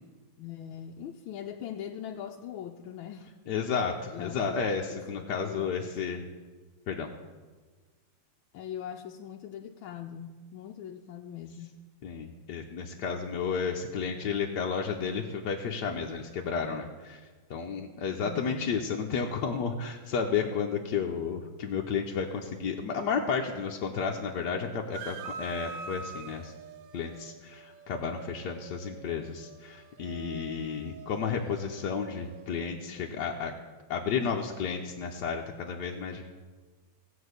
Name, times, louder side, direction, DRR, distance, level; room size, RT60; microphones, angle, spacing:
voice 1, 0.4-3.3 4.1-4.5 4.9-6.2 8.5-11.8 18.2-18.8, left 9 dB, 90° left, 2 dB, 1.4 m, -41 dB
voice 2, 3.5-6.2 6.9-7.1 12.0-17.2 17.5-26.5 26.9-33.5 33.9-36.3, left 6 dB, 65° left, 0 dB, 1.3 m, -32 dB
sound 1, 24.9-32.7, right 4 dB, 75° right, 0.7 m, -46 dB
16.5 x 5.5 x 8.1 m, 1.4 s
omnidirectional pair, 2.2 m